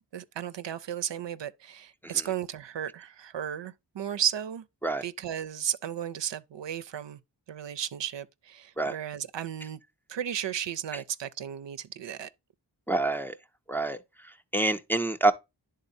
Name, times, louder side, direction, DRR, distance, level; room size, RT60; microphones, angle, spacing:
voice 1, 0.1-4.7 5.0-7.2 7.5-9.8 10.1-12.3, right 9 dB, 80° right, 0.5 m, -34 dB
voice 2, 12.9-13.3 13.7-14.0 14.2-15.3, right 2 dB, 5° left, 0.5 m, -27 dB
11.0 x 3.8 x 2.6 m
wide cardioid pair, 80°, 43 cm